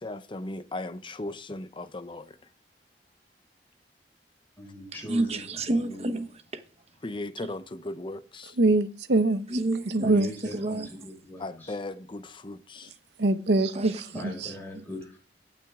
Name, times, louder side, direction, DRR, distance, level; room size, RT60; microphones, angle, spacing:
voice 1, 0.0-2.3 7.0-8.5 11.4-12.9, left 2 dB, 30° left, 0.7 m, -37 dB
voice 2, 4.6-5.5 5.8-6.0 10.0-11.7 14.1-15.3, equal, 10° left, 5.5 m, -40 dB
voice 3, 5.1-6.6 9.5-10.2 10.5-10.9 13.7-14.2 14.7-14.8, right 2 dB, 35° right, 1.1 m, -30 dB
voice 4, 8.6-9.5 9.9-10.3 13.2-14.5, right 2 dB, 70° right, 0.8 m, -24 dB
16.5 x 6.0 x 3.6 m
head